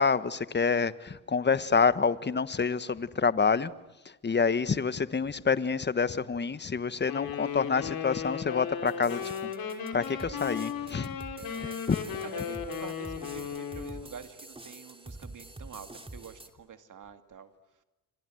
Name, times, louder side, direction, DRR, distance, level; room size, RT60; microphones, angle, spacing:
voice 1, 0.0-3.7 4.2-9.3 9.9-11.1 11.9-12.0, left 5 dB, 25° left, 1.3 m, -27 dB
Wind instrument woodwind instrument, 7.1-14.0, left 7 dB, 60° left, 5.1 m, -36 dB
sound 1, 8.9-16.5, right 2 dB, 15° right, 3.1 m, -47 dB
voice 2, 11.6-17.5, right 7 dB, 50° right, 2.6 m, -47 dB
29.0 x 25.0 x 7.9 m
supercardioid pair, 60°, 40 cm